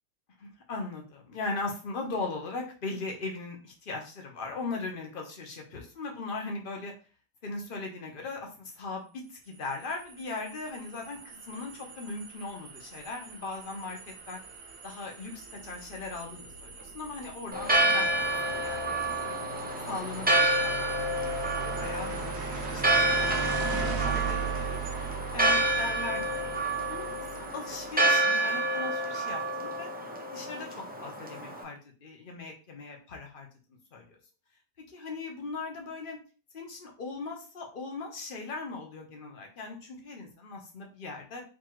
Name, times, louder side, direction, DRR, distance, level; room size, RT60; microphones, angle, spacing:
voice 1, 0.4-6.9 7.4-14.4 14.8-19.4 19.9-21.4 21.6-24.8 25.3-27.3 27.5-29.9 30.3-33.5 33.9-34.1 34.9-36.2 36.5-41.4, left 3 dB, 45° left, 2 dB, 1.1 m, -39 dB
sound 1, 9.5-28.0, right 7 dB, 65° right, 1.0 m, -39 dB
Church bell, 17.5-31.6, right 1 dB, 15° right, 0.4 m, -28 dB
4.1 x 2.9 x 3.1 m, 0.36 s
omnidirectional pair, 1.3 m